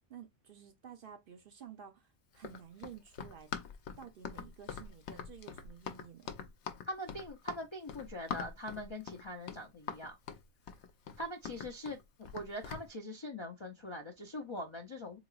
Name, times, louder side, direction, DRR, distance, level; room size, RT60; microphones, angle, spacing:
voice 1, 0.1-3.5 4.0-6.3, right 8 dB, 60° right, 0.7 m, -52 dB
Run, 2.3-12.9, left 7 dB, 75° left, 0.9 m, -44 dB
voice 2, 6.9-10.2 11.2-12.0 12.3-15.2, left 1 dB, 40° left, 0.4 m, -42 dB
4.0 x 2.9 x 2.3 m
omnidirectional pair, 1.2 m